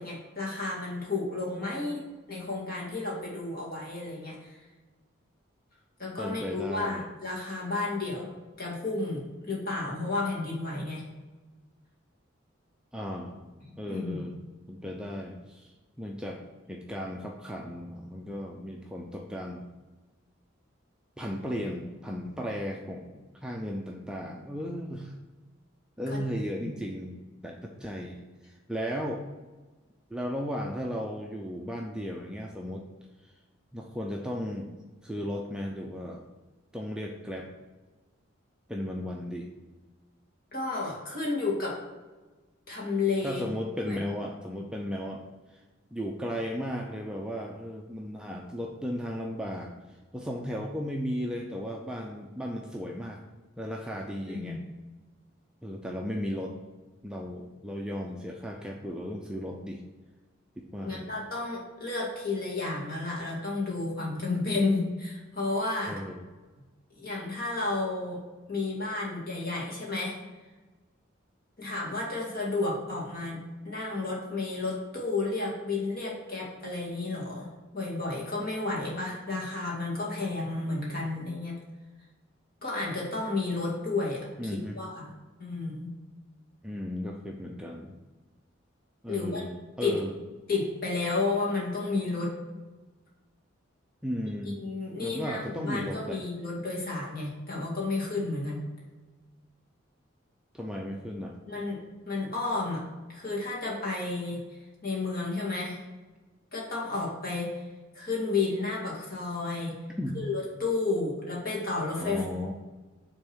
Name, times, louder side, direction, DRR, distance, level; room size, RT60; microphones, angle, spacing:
voice 1, 0.0-4.6 6.0-8.3 8.6-11.1 13.7-14.3 26.1-26.2 26.6-26.7 40.5-41.8 42.7-43.5 43.9-44.0 54.3-54.6 60.8-66.0 66.9-68.2 68.5-70.2 71.6-77.5 77.7-81.5 82.6-84.2 84.5-85.1 85.4-85.9 89.1-89.4 89.8-90.0 90.5-92.3 94.3-98.6 101.5-101.8 102.1-102.8 103.1-104.4 104.8-105.8 106.5-107.6 107.9-109.7 110.1-112.2, left 3 dB, 50° left, -4 dB, 2.2 m, -32 dB
voice 2, 6.2-7.0 12.9-13.4 13.8-16.4 16.7-19.6 21.2-25.1 26.0-27.2 27.4-29.2 30.1-32.9 33.7-34.7 35.0-36.2 36.7-37.5 38.7-39.5 43.2-45.2 45.5-45.6 45.9-49.7 50.1-53.2 53.6-54.6 55.6-56.6 57.0-59.8 60.6-61.1 65.9-66.2 84.4-84.8 86.6-88.0 89.0-90.1 94.0-94.6 95.0-96.2 100.5-101.4 110.0-110.2 112.0-112.5, equal, 5° right, 0 dB, 0.4 m, -35 dB
6.4 x 3.6 x 6.1 m, 1.2 s
head